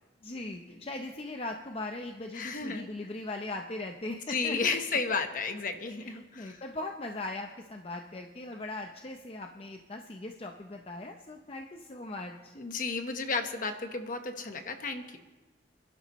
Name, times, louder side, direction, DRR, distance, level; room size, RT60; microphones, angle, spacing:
voice 1, 0.2-4.8 6.0-12.5, left 2 dB, 35° left, 3 dB, 0.7 m, -39 dB
voice 2, 2.3-2.9 4.1-6.6 12.6-15.2, left 4 dB, 50° left, 6 dB, 1.2 m, -33 dB
28.5 x 11.5 x 3.1 m, 1.2 s
head